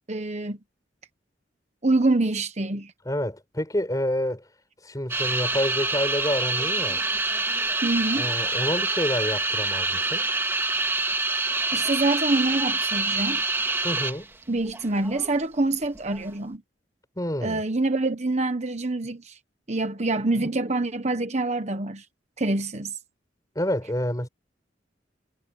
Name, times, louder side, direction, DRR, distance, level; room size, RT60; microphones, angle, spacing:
voice 1, 0.1-0.6 1.8-2.9 7.8-8.3 11.7-13.4 14.5-16.6 17.4-19.4 19.7-22.0 22.4-23.0, right 2 dB, 40° right, 1.1 m, -26 dB
voice 2, 3.0-4.4 4.8-7.0 8.1-10.3 13.8-14.3 17.2-17.6 23.5-24.3, left 1 dB, 20° left, 6.1 m, -28 dB
sound 1, 5.1-14.3 14.6-15.3 16.0-16.3, right 3 dB, 15° right, 2.3 m, -26 dB
head